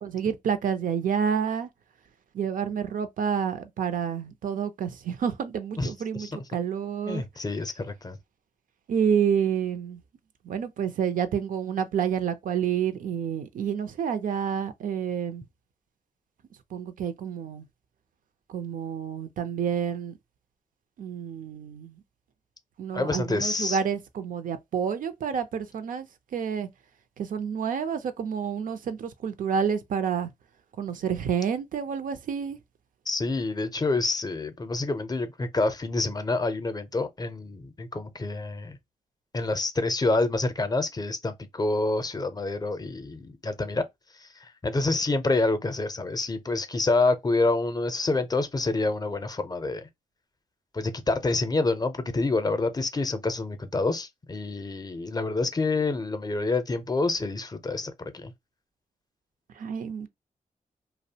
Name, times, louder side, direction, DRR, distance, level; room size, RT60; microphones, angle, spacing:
voice 1, 0.0-1.7 2.3-7.2 8.9-10.0 10.4-15.4 16.7-17.7 18.5-20.2 21.0-22.0 22.8-26.1 26.3-26.7 27.2-30.3 30.8-32.6 59.6-60.1, right 7 dB, 80° right, 0.4 m, -29 dB
voice 2, 7.1-8.2 22.9-23.8 33.1-38.8 39.3-43.8 44.6-49.9 50.7-58.3, left 3 dB, 30° left, 0.5 m, -27 dB
2.6 x 2.0 x 2.7 m
cardioid pair, 75°, 14 cm